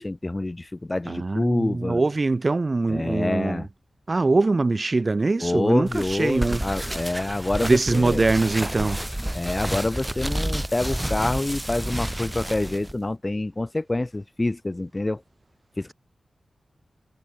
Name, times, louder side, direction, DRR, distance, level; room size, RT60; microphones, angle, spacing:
voice 1, 0.0-2.0 2.9-3.7 5.4-8.2 9.3-15.2 15.8-15.9, left 2 dB, 30° left, 1.1 m, -27 dB
voice 2, 1.1-3.7 4.1-6.6 7.6-9.0, right 3 dB, 45° right, 1.6 m, -23 dB
sound 1, 5.9-12.9, right 1 dB, 10° right, 4.4 m, -30 dB
wide cardioid pair, 65°, 0 cm